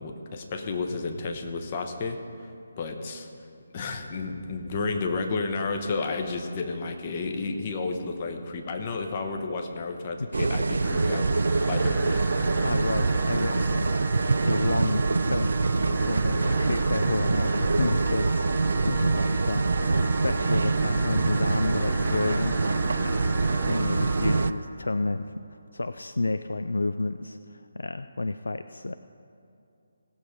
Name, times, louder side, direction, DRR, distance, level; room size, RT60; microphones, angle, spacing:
voice 1, 0.0-2.2 2.8-3.3 3.7-12.2, left 4 dB, 30° left, 4 dB, 1.0 m, -32 dB
sound 1, 10.3-24.5, right 3 dB, 60° right, 0.3 m, -25 dB
sound 2, 10.8-24.5, right 2 dB, ahead, 0.8 m, -36 dB
voice 2, 12.4-22.6 23.0-23.2 23.7-25.5 25.7-28.9, left 2 dB, 65° left, 10 dB, 0.3 m, -31 dB
17.0 x 7.0 x 5.1 m, 2.7 s
figure-of-eight pair, 145°, 0 cm